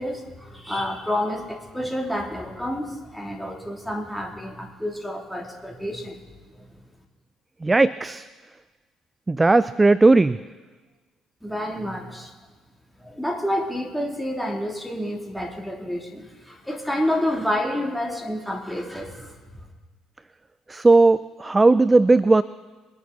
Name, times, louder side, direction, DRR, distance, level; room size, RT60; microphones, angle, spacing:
voice 1, 0.0-6.2 6.5-6.7 11.4-12.3 13.0-19.6, left 1 dB, 5° left, 1 dB, 3.0 m, -29 dB
voice 2, 7.6-8.3 9.3-10.4 20.7-22.4, right 3 dB, 20° right, 16 dB, 0.4 m, -17 dB
22.5 x 10.0 x 4.1 m, 1.3 s
figure-of-eight pair, 50°, 0 cm